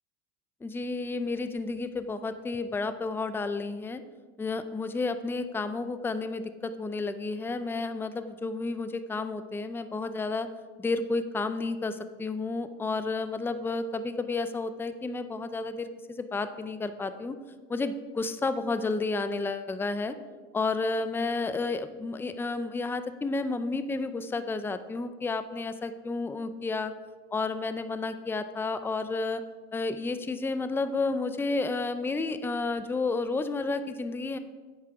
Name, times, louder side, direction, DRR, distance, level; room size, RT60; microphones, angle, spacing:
voice 1, 0.6-4.0 4.4-10.5 10.8-17.4 17.7-20.1 20.5-26.9 27.3-29.4 29.7-34.4, left 3 dB, 5° left, 11 dB, 0.5 m, -31 dB
9.6 x 8.7 x 4.8 m, 1.4 s
supercardioid pair, 110°, 38 cm